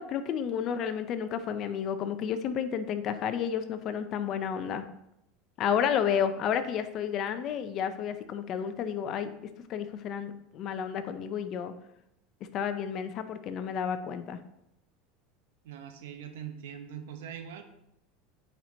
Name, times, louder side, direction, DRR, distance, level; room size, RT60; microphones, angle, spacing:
voice 1, 0.0-4.8 5.6-9.3 9.7-11.7 12.5-14.4, left 8 dB, 40° left, 10 dB, 0.6 m, -31 dB
voice 2, 15.6-17.6, right 9 dB, 85° right, 7 dB, 0.9 m, -42 dB
9.2 x 4.5 x 2.8 m, 0.82 s
supercardioid pair, 135°, 0 cm